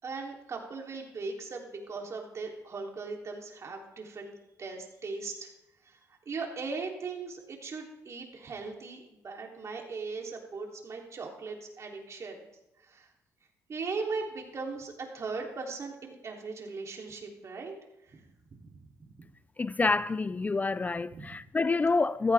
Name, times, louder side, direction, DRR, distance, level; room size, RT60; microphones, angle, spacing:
voice 1, 0.0-5.5 5.8-6.0 6.3-12.4 12.8-13.1 13.7-17.7 18.0-18.3 18.8-18.9 21.1-21.4, right 4 dB, 50° right, 3.6 m, -39 dB
voice 2, 19.6-22.3, left 3 dB, 25° left, 0.4 m, -27 dB
15.5 x 14.5 x 3.7 m
supercardioid pair, 65°, 7 cm